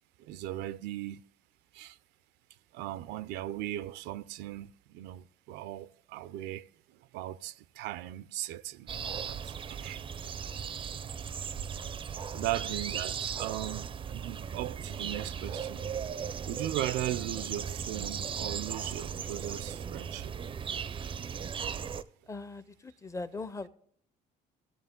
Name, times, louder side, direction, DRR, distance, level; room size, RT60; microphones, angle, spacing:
voice 1, 0.2-1.2 1.7-2.0 2.7-6.7 7.1-10.0 12.3-15.8 16.5-20.3, right 14 dB, 90° right, 0.4 m, -38 dB
sound 1, 8.9-22.0, right 7 dB, 30° right, 0.4 m, -37 dB
voice 2, 22.3-23.7, left 3 dB, 20° left, 0.5 m, -40 dB
15.0 x 7.5 x 3.6 m
cardioid pair, 110°, 17 cm